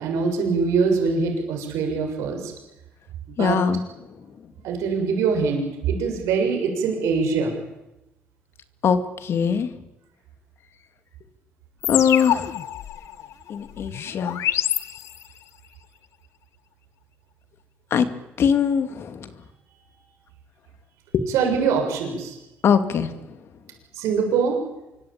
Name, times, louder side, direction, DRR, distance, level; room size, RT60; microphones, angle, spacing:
voice 1, 0.0-2.5 3.3-3.6 4.6-7.5 21.3-22.4 24.0-24.6, right 5 dB, 90° right, 3 dB, 6.9 m, -23 dB
voice 2, 3.4-3.8 8.8-9.7 11.9-12.5 13.5-14.4 17.9-18.1 18.4-19.3 21.1-21.2 22.6-23.1, left 7 dB, 60° left, 9 dB, 2.6 m, -21 dB
sound 1, 11.8-15.5, left 11 dB, 75° left, 1.3 m, -27 dB
25.5 x 24.5 x 9.0 m, 0.96 s
cardioid pair, 95°, 5 cm